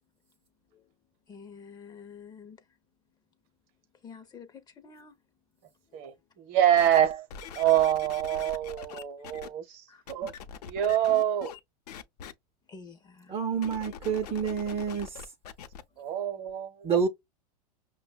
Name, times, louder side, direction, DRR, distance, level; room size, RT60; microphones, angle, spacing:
voice 1, 1.3-2.6 4.0-5.2 5.9-6.2 9.9-10.0 12.7-13.3, left 6 dB, 20° left, 0.6 m, -48 dB
voice 2, 5.9-7.3 7.5-10.3 10.6-11.5 16.0-16.9, right 11 dB, 50° right, 0.9 m, -26 dB
sound 1, 6.8-9.5 10.1-11.6 11.9-12.3 13.5-15.8 16.5-16.6, left 8 dB, 80° left, 0.7 m, -43 dB
voice 3, 13.3-15.2 16.8-17.1, right 6 dB, 30° right, 0.6 m, -28 dB
5.6 x 2.2 x 2.2 m
hypercardioid pair, 115°, 20 cm